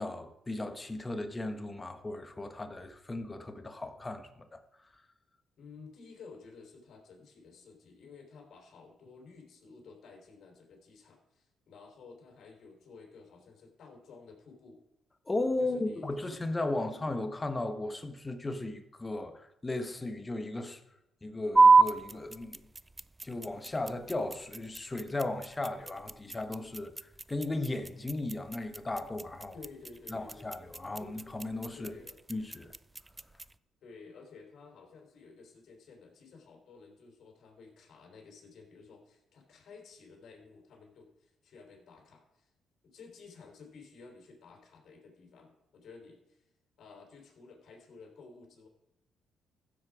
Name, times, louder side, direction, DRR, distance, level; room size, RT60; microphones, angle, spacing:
voice 1, 0.0-4.9 15.3-20.8 21.2-22.7 23.2-29.6 30.1-32.0 32.3-32.7, left 2 dB, 20° left, 1.3 m, -36 dB
voice 2, 5.6-14.8 15.6-16.3 16.7-17.1 29.5-30.5 31.0-31.1 31.7-32.2 33.8-42.5 42.8-46.5 46.8-48.7, left 4 dB, 65° left, 3.8 m, -53 dB
sound 1, 21.5-33.6, right 4 dB, 15° right, 0.4 m, -29 dB
15.0 x 7.7 x 4.9 m
cardioid pair, 90°, 0 cm